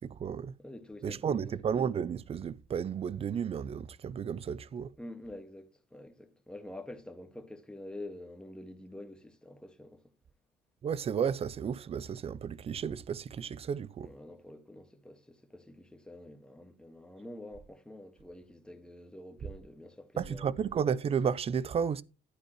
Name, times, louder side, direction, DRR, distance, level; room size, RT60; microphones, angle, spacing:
voice 1, 0.0-0.5 1.0-4.9 10.8-14.1 20.2-22.0, right 7 dB, 35° right, 0.5 m, -33 dB
voice 2, 0.6-1.6 5.0-10.0 14.0-20.5, left 1 dB, 5° left, 1.6 m, -47 dB
12.0 x 9.2 x 3.1 m
cardioid pair, 110°, 17 cm